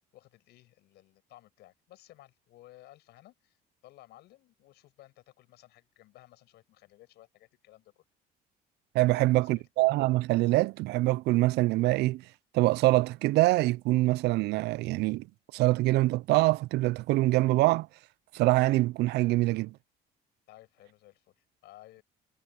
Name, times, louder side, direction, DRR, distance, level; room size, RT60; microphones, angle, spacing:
voice 1, 0.1-3.6 3.8-8.0 9.1-9.6 20.5-22.0, left 16 dB, 80° left, 6.9 m, -56 dB
voice 2, 8.9-12.3 12.5-15.3 15.5-17.9 18.3-19.8, right 19 dB, 80° right, 0.4 m, -24 dB
cardioid pair, 110°, 17 cm